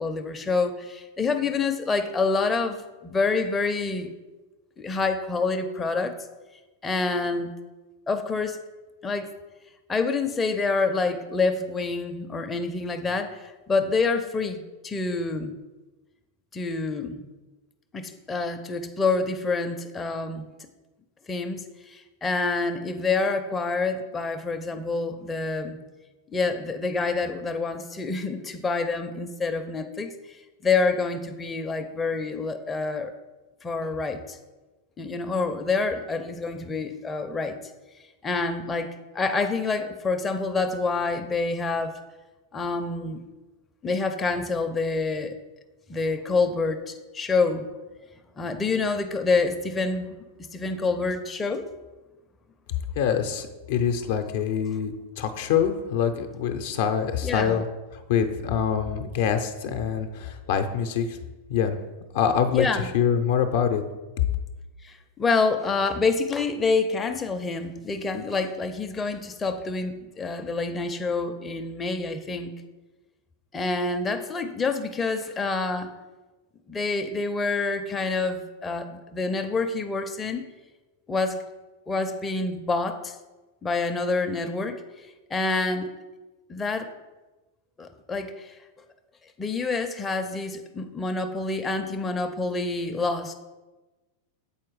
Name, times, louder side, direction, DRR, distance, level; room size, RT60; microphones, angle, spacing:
voice 1, 0.0-4.1 4.8-6.1 6.8-7.5 8.1-8.6 9.0-9.3 9.9-15.6 16.5-17.2 17.9-20.5 21.3-25.8 26.3-30.1 30.6-33.1 33.6-34.4 35.0-37.6 38.2-41.9 42.5-43.2 43.8-45.4 45.9-47.7 48.4-50.2 50.5-51.7 57.2-57.6 62.5-62.9 64.8-72.5 73.5-75.9 76.7-80.4 81.1-81.4 81.9-83.2 83.6-85.9 86.5-86.9 87.8-88.6 89.4-93.3, left 3 dB, 15° left, 5 dB, 0.5 m, -27 dB
voice 2, 53.0-57.7 57.9-61.2 61.5-61.8 62.1-62.7 62.9-63.8, left 8 dB, 60° left, 7 dB, 0.6 m, -25 dB
7.1 x 4.5 x 4.7 m, 1.2 s
figure-of-eight pair, 90°, 0 cm